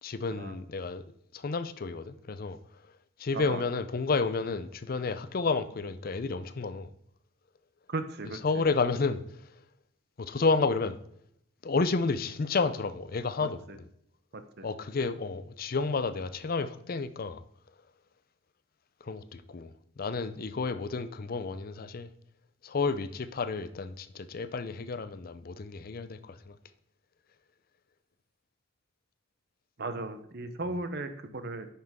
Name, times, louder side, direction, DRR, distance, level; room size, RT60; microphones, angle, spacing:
voice 1, 0.0-1.0 1.3-2.6 3.2-6.9 8.2-9.2 10.2-11.0 11.6-13.8 14.6-17.4 19.0-22.1 22.6-26.6, left 4 dB, 45° left, 0.5 m, -31 dB
voice 2, 7.9-8.4 14.3-14.6 29.8-31.7, right 2 dB, 55° right, 0.8 m, -36 dB
9.6 x 5.9 x 3.6 m
head